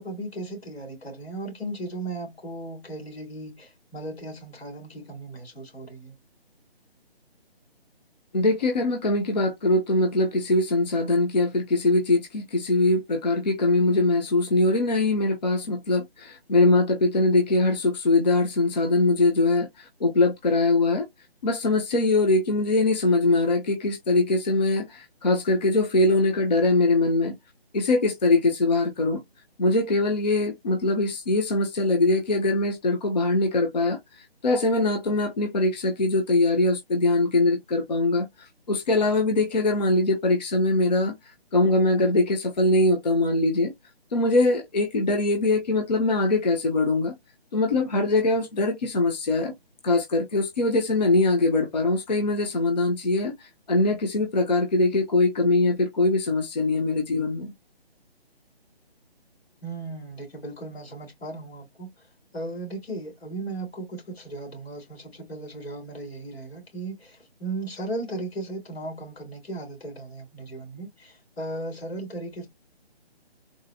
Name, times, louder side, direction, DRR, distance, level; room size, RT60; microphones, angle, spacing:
voice 1, 0.0-6.2 59.6-61.9 62.3-72.5, right 2 dB, 85° left, 2.2 m, -36 dB
voice 2, 8.3-21.1 21.4-27.4 27.7-29.2 29.6-34.0 34.4-38.3 38.7-41.1 41.5-43.7 44.1-47.1 47.5-49.5 49.8-53.3 53.7-57.5, left 2 dB, 45° left, 0.6 m, -22 dB
3.8 x 2.0 x 2.5 m
hypercardioid pair, 165°, 31 cm